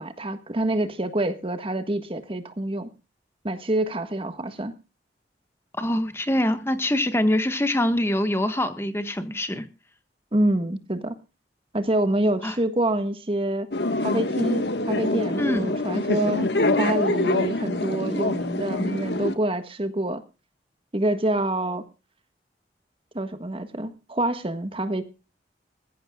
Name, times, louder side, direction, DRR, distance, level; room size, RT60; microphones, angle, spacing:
voice 1, 0.0-2.9 3.4-4.7 10.3-11.1 11.7-13.7 14.0-16.5 16.8-20.2 20.9-21.8 23.1-25.0, right 1 dB, 30° right, 9 dB, 1.5 m, -26 dB
voice 2, 5.8-9.6 12.4-12.5 15.4-15.7, left 1 dB, 15° left, 9 dB, 1.4 m, -24 dB
sound 1, 13.7-19.3, left 2 dB, 70° left, 1.5 m, -25 dB
21.0 x 15.0 x 2.3 m, 0.31 s
head